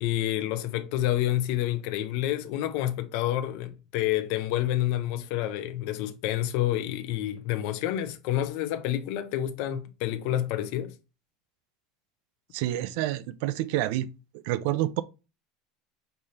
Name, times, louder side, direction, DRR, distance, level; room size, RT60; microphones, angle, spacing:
voice 1, 0.0-10.9, left 13 dB, 60° left, 0.7 m, -28 dB
voice 2, 12.5-14.1 14.4-15.0, right 14 dB, 65° right, 0.4 m, -28 dB
5.4 x 2.8 x 3.2 m
supercardioid pair, 155°, 0 cm